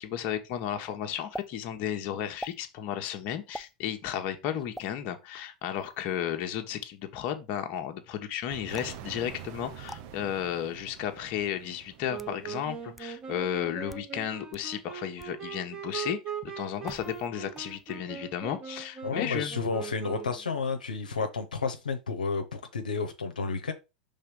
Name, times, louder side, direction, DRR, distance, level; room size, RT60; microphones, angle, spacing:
voice 1, 0.0-19.6, left 10 dB, 50° left, 1.1 m, -34 dB
sound 1, 1.3-1.5 2.4-2.6 3.5-3.7 4.7-4.9 5.8-6.0 8.7-9.0 9.9-10.0 11.0-11.1 11.9-12.4 13.0-13.1 13.8-14.1 14.5-14.6 15.2-15.4 16.8-17.3 17.5-18.0, equal, ahead, 0.3 m, -43 dB
sound 2, 8.5-13.2, right 10 dB, 50° right, 0.9 m, -46 dB
Wind instrument woodwind instrument, 12.1-20.5, right 8 dB, 25° right, 1.6 m, -40 dB
voice 2, 19.0-23.7, left 4 dB, 90° left, 0.9 m, -31 dB
5.6 x 3.6 x 5.2 m
hypercardioid pair, 95°, 4 cm